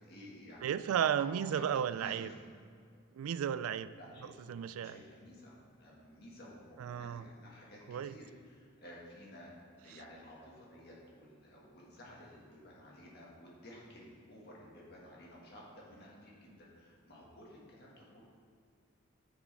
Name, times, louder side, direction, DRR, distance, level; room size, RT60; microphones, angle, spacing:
voice 1, 0.1-0.7 1.1-2.4 4.0-4.3 4.8-9.5 9.8-18.3, left 1 dB, 50° left, -4 dB, 1.9 m, -53 dB
voice 2, 0.6-2.3 3.1-3.9 4.2-5.0 6.8-7.3 7.9-8.1, right 9 dB, 90° right, 14 dB, 0.3 m, -34 dB
9.9 x 7.3 x 3.5 m, 2.2 s
head